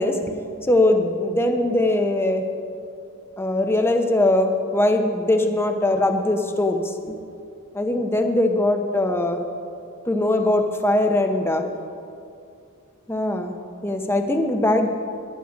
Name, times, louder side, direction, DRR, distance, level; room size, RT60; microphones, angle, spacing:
voice 1, 0.0-2.4 3.4-7.2 7.7-9.4 10.1-11.7 13.1-13.6 13.8-14.9, left 1 dB, 10° left, 5 dB, 0.7 m, -21 dB
10.5 x 9.5 x 5.1 m, 2.4 s
head